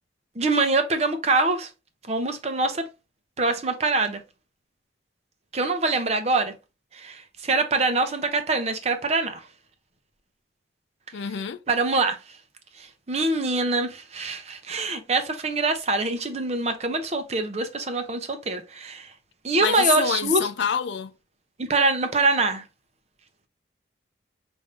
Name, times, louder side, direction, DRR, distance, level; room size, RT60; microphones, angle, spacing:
voice 1, 0.4-1.7 2.1-2.9 3.4-4.2 5.5-6.5 6.9-9.4 11.7-12.2 12.8-19.1 19.4-20.5 21.6-22.6, right 3 dB, 35° right, 0.6 m, -24 dB
voice 2, 11.1-11.6 19.6-21.1, left 8 dB, 70° left, 0.4 m, -26 dB
5.0 x 2.6 x 3.3 m
head